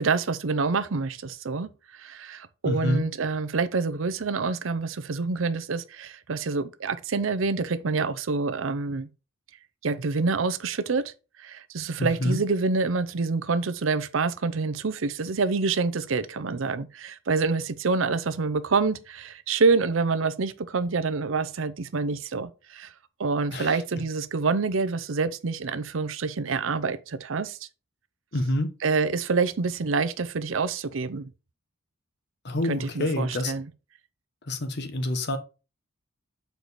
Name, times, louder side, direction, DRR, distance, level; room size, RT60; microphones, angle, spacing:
voice 1, 0.0-9.1 9.8-11.1 11.4-22.9 23.2-27.6 28.8-31.3 32.7-33.7, right 4 dB, 70° right, 0.6 m, -27 dB
voice 2, 2.6-3.0 12.0-12.4 23.5-23.8 28.3-28.7 32.4-33.5 34.5-35.4, left 1 dB, 55° left, 1.0 m, -27 dB
6.7 x 4.7 x 4.0 m
head